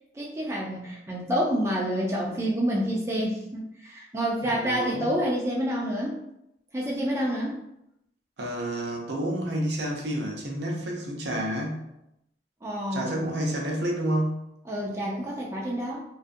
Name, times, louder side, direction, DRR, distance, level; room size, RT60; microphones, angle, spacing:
voice 1, 0.1-6.2 6.7-7.6 12.6-13.3 14.7-16.0, equal, 15° right, -4 dB, 0.3 m, -28 dB
voice 2, 4.4-5.1 8.4-11.8 12.9-14.4, right 1 dB, 65° right, 0 dB, 0.6 m, -29 dB
2.6 x 2.4 x 2.5 m, 0.82 s
head